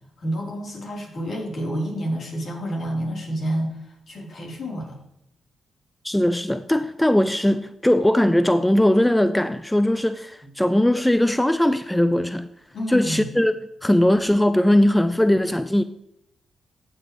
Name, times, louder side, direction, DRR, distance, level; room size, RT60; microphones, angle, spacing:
voice 1, 0.2-5.0 10.4-10.5 12.7-13.2, equal, 65° left, 4.0 m, -29 dB
voice 2, 6.0-12.5 12.9-13.6 13.8-15.8, left 1 dB, 10° left, 0.5 m, -19 dB
14.0 x 7.0 x 3.3 m
supercardioid pair, 50°, 0 cm